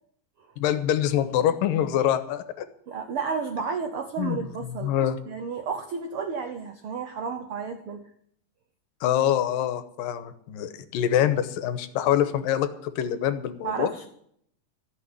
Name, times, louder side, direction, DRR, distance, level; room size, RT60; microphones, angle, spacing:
voice 1, 0.6-2.7 4.2-4.4 4.8-5.2 9.0-13.9, left 10 dB, 85° left, 11 dB, 2.6 m, -25 dB
voice 2, 2.9-5.0 5.3-8.0 13.6-14.1, right 5 dB, 80° right, 6 dB, 1.2 m, -32 dB
14.0 x 6.6 x 9.7 m, 0.68 s
omnidirectional pair, 3.9 m